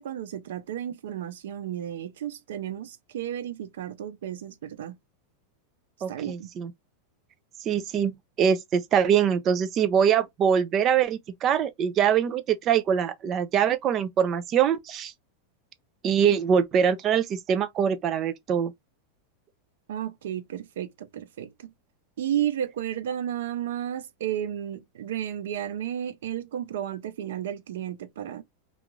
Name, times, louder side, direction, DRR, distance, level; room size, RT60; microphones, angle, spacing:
voice 1, 0.0-5.0 6.1-6.5 19.9-21.7 22.2-28.4, right 10 dB, 85° right, 0.5 m, -33 dB
voice 2, 6.0-6.7 7.6-15.1 16.0-18.7, right 8 dB, 25° right, 0.4 m, -23 dB
2.5 x 2.4 x 3.0 m
supercardioid pair, 170°, 0 cm